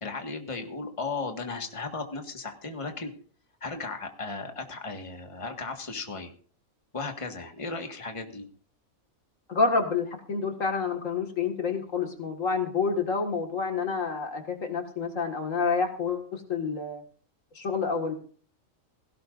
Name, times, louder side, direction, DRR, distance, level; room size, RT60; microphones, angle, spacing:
voice 1, 0.0-3.1 3.6-6.3 6.9-8.5, left 3 dB, 25° left, 4 dB, 1.8 m, -35 dB
voice 2, 9.5-17.0 17.6-18.2, left 5 dB, 70° left, 4 dB, 2.3 m, -28 dB
17.0 x 17.0 x 2.6 m, 0.43 s
omnidirectional pair, 1.4 m